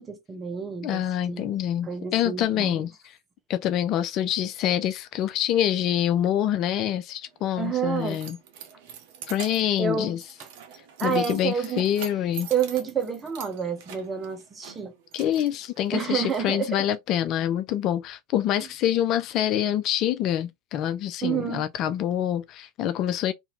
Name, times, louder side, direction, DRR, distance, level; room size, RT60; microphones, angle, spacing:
voice 1, 0.0-1.0 1.3-1.5 1.8-2.8 7.6-8.2 9.8-10.2 11.0-11.9 12.5-14.9 15.9-16.8 21.2-21.7, right 7 dB, 25° right, 1.0 m, -29 dB
voice 2, 0.8-3.2 3.5-8.4 9.3-10.2 11.0-12.5 15.1-23.3, left 11 dB, 45° left, 0.4 m, -26 dB
Keys jangling, 7.3-16.3, right 7 dB, 60° right, 0.7 m, -44 dB
2.8 x 2.6 x 3.1 m
figure-of-eight pair, 85°, 0 cm